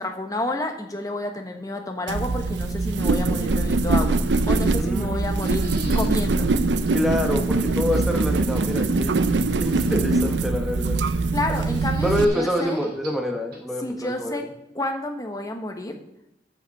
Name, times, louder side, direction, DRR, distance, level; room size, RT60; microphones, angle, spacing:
voice 1, 0.0-4.2 4.5-5.7 5.9-6.5 11.3-12.8 13.8-14.4 14.7-16.0, left 1 dB, 20° left, 4 dB, 1.3 m, -30 dB
sound 1, 2.1-12.2, right 3 dB, 80° right, 0.6 m, -23 dB
voice 2, 4.8-6.0 6.9-9.2 9.6-11.0 12.0-14.4, left 1 dB, ahead, 2 dB, 1.3 m, -27 dB
sound 2, 5.2-6.1 6.5-6.6 6.9-7.0 7.9-8.3 9.6-10.2 11.6-13.3 13.5-13.6, right 3 dB, 55° right, 2.4 m, -45 dB
13.5 x 5.5 x 5.5 m, 0.86 s
head